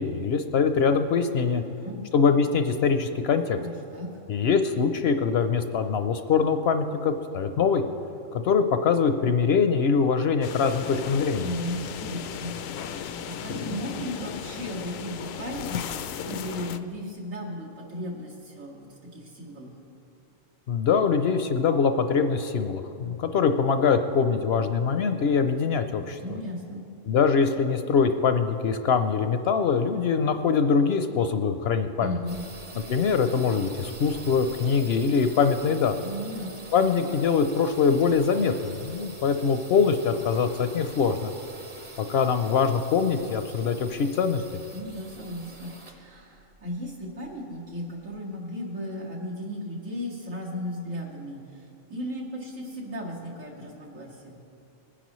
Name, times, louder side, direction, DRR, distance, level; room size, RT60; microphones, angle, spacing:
voice 1, 0.0-1.6 2.1-3.6 4.3-7.8 8.3-11.4 20.7-26.2 27.1-32.2 32.9-35.9 36.7-41.3 42.0-44.4, left 5 dB, 65° left, 8 dB, 0.7 m, -23 dB
voice 2, 1.6-2.0 3.5-4.2 11.4-18.9 19.1-19.7 26.2-26.9 32.0-32.5 36.0-36.6 44.7-54.4, equal, 85° right, -4 dB, 2.5 m, -36 dB
sound 1, 10.4-16.8, left 8 dB, 85° left, 1.0 m, -35 dB
sound 2, 32.3-47.9, right 2 dB, 30° right, 0.8 m, -45 dB
20.0 x 10.0 x 3.1 m, 2.8 s
omnidirectional pair, 1.3 m